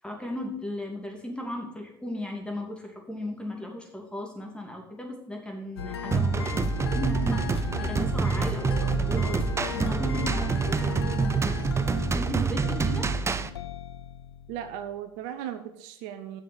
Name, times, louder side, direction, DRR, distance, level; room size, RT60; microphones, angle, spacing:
voice 1, 0.0-11.6 11.9-13.1, left 1 dB, 5° left, 1 dB, 2.7 m, -36 dB
sound 1, 5.8-14.9, left 8 dB, 85° left, 0.5 m, -36 dB
sound 2, 6.1-13.5, right 5 dB, 20° right, 0.6 m, -27 dB
voice 2, 14.5-16.4, right 10 dB, 65° right, 9 dB, 0.8 m, -37 dB
7.4 x 6.3 x 7.1 m, 0.79 s
hypercardioid pair, 65°, 13 cm